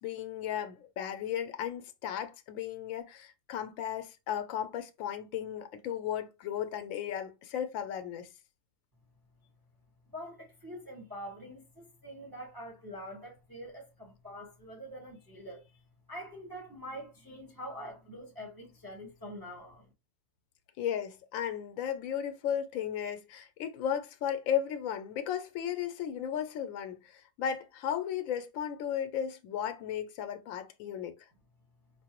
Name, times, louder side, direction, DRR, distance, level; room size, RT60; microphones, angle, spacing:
voice 1, 0.0-8.3 20.8-31.2, left 9 dB, 85° left, 1.0 m, -35 dB
voice 2, 10.1-15.8 16.1-19.9, equal, 20° right, 0.8 m, -45 dB
4.8 x 2.0 x 2.9 m
omnidirectional pair, 1.4 m